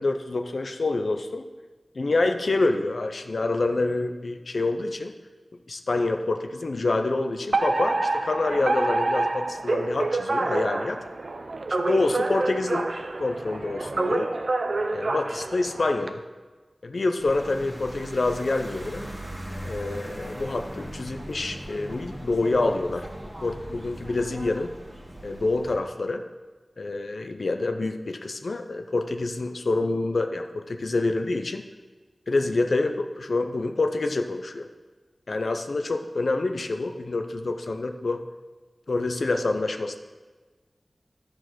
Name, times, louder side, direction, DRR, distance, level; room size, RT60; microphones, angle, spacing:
voice 1, 0.0-1.5 2.0-5.1 5.7-11.0 11.8-12.9 13.2-14.3 14.9-16.2 16.8-19.1 19.6-23.1 23.4-24.7 25.2-26.2 26.8-31.6 32.3-34.7 35.3-38.2 38.9-40.0, left 2 dB, 80° left, 6 dB, 0.5 m, -27 dB
Alarm, 7.5-16.1, right 2 dB, 75° right, 0.5 m, -27 dB
sound 1, 17.2-25.8, right 1 dB, 20° right, 1.5 m, -39 dB
11.5 x 4.3 x 6.1 m, 1.3 s
wide cardioid pair, 60°, 0 cm